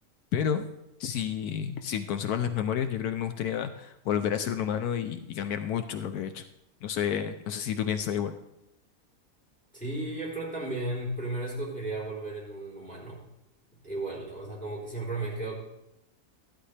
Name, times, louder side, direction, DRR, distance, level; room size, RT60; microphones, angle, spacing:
voice 1, 0.3-0.6 1.0-6.5 6.8-8.3, left 8 dB, 80° left, 9 dB, 1.1 m, -30 dB
voice 2, 9.7-13.2 13.8-15.6, right 2 dB, 5° left, -5 dB, 3.7 m, -34 dB
13.5 x 11.5 x 3.3 m, 0.88 s
omnidirectional pair, 1.6 m